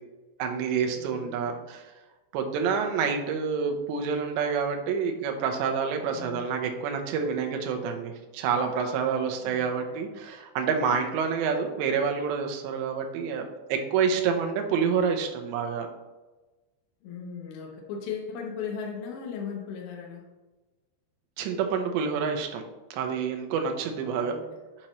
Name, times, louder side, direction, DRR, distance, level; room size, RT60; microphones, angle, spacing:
voice 1, 0.4-1.8 2.3-13.4 13.7-15.9 21.4-22.6 22.9-24.4, right 6 dB, 80° right, 4 dB, 2.7 m, -28 dB
voice 2, 0.9-1.5 6.1-6.6 9.4-9.7 17.0-20.2 24.0-24.4, left 6 dB, 85° left, 0 dB, 2.1 m, -37 dB
7.6 x 4.3 x 3.0 m, 1.2 s
omnidirectional pair, 5.6 m